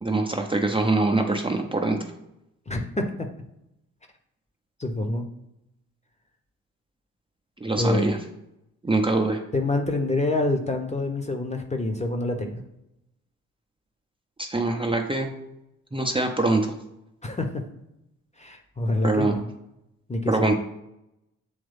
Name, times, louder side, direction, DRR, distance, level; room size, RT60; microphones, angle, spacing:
voice 1, 0.0-2.0 7.6-8.2 8.8-9.4 14.4-15.3 15.9-16.7 19.0-19.4 20.3-20.5, right 2 dB, 15° right, 3 dB, 0.8 m, -23 dB
voice 2, 2.7-3.3 4.8-5.2 7.8-8.1 9.5-12.6 17.2-17.6 18.4-19.4 20.1-20.6, left 2 dB, 15° left, 4 dB, 1.1 m, -26 dB
8.0 x 3.5 x 3.5 m, 0.85 s
figure-of-eight pair, 40°, 40 cm